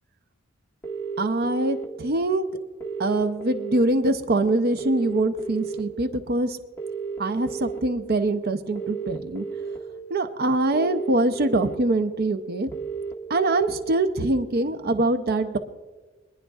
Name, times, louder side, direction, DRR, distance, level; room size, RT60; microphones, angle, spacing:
sound 1, 0.8-1.8 2.8-3.8 4.8-5.8 6.8-7.8 8.7-9.8 10.7-11.7 12.7-13.7, right 5 dB, 15° left, 1.6 m, -33 dB
voice 1, 1.2-2.4 3.0-6.6 7.2-9.4 10.1-12.7 13.3-15.6, right 2 dB, 50° right, 9 dB, 0.6 m, -24 dB
24.0 x 10.5 x 2.4 m, 1.3 s
head